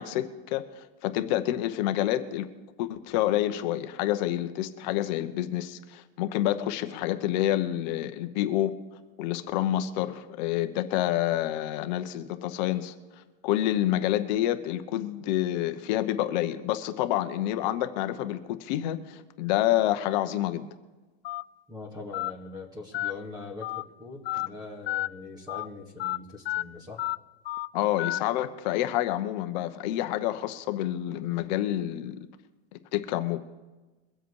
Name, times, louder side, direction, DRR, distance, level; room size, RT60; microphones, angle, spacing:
voice 1, 0.0-2.5 2.8-8.7 9.2-20.7 27.7-32.2 32.9-33.4, left 13 dB, 40° left, 9 dB, 0.9 m, -28 dB
Telephone, 21.2-21.4 22.1-22.3 22.9-23.1 23.6-23.8 24.3-24.5 24.9-25.1 25.5-25.6 26.0-26.2 26.5-26.6 27.0-27.2 27.5-27.7 28.0-28.2, left 16 dB, 60° left, 0.5 m, -30 dB
voice 2, 21.7-27.1, left 3 dB, 10° right, 1 dB, 2.2 m, -42 dB
23.0 x 7.9 x 4.8 m, 1.2 s
supercardioid pair, 165°, 34 cm